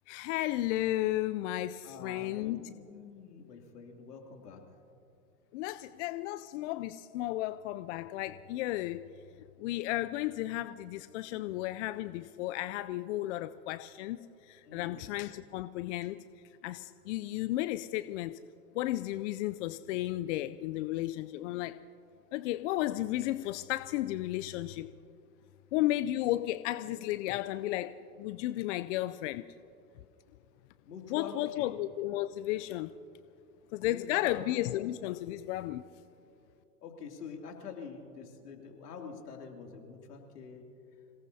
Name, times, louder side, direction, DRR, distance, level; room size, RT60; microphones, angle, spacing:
voice 1, 0.1-2.6 5.5-9.0 9.6-16.2 16.6-18.4 18.7-21.8 22.3-24.9 25.7-29.4 31.1-32.9 33.7-35.8, left 15 dB, 50° left, 13 dB, 0.5 m, -33 dB
voice 2, 1.8-4.6 14.6-15.2 30.8-31.7 33.8-34.4 36.8-40.7, left 5 dB, 80° left, 2 dB, 2.9 m, -46 dB
27.5 x 18.0 x 2.8 m, 2.7 s
hypercardioid pair, 105°, 46 cm